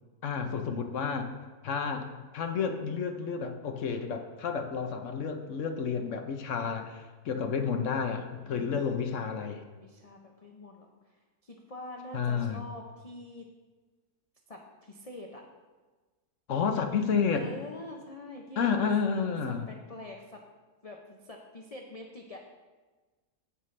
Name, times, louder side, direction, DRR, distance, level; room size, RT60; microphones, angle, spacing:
voice 1, 0.2-1.3 1.6-9.6 12.1-12.6 16.5-17.5 18.6-19.7, left 6 dB, 60° left, 6 dB, 1.0 m, -30 dB
voice 2, 8.3-9.0 9.8-13.4 14.5-15.4 17.3-18.9 19.5-20.4 20.8-22.4, left 2 dB, 40° left, 1 dB, 0.5 m, -45 dB
16.5 x 5.5 x 3.2 m, 1.3 s
omnidirectional pair, 1.6 m